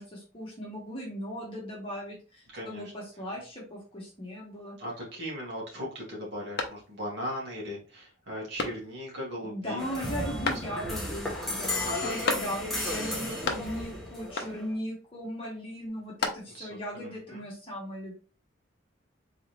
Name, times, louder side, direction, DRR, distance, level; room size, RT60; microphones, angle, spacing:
voice 1, 0.0-4.8 9.4-18.1, equal, 25° left, -4 dB, 1.3 m, -38 dB
voice 2, 2.5-2.9 4.8-10.1 11.8-12.2 16.5-17.4, equal, 60° right, -4 dB, 2.3 m, -38 dB
sound 1, 6.6-7.3 7.7-7.8 8.6-9.2 10.4-11.1 12.2-12.9 13.1-14.0 14.3-14.8 15.8-16.8, left 3 dB, 50° left, 0.7 m, -34 dB
sound 2, 9.8-14.7, left 1 dB, ahead, 1.2 m, -34 dB
4.0 x 3.7 x 3.1 m, 0.36 s
head